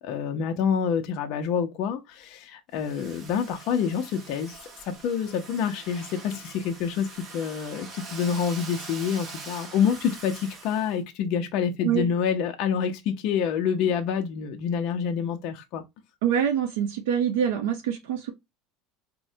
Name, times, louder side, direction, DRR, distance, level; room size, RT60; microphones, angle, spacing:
voice 1, 0.0-15.8, left 7 dB, 45° left, 0.6 m, -27 dB
Domestic sounds home sounds, 2.7-11.0, right 3 dB, 30° right, 0.7 m, -43 dB
voice 2, 16.2-18.3, right 9 dB, 85° right, 0.7 m, -25 dB
4.4 x 2.1 x 2.7 m
cardioid pair, 165°, 0 cm